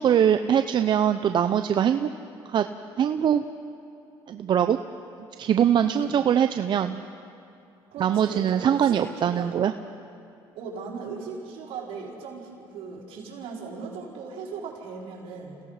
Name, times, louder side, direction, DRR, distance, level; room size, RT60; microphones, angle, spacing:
voice 1, 0.0-2.1 2.5-2.7 3.0-3.4 4.3-4.8 5.4-7.0 8.0-9.7, right 9 dB, 55° right, 9 dB, 0.6 m, -22 dB
voice 2, 5.8-6.1 7.9-9.6 10.5-15.6, right 5 dB, 75° right, -3 dB, 4.8 m, -38 dB
28.0 x 17.0 x 5.7 m, 2.7 s
cardioid pair, 90°, 10 cm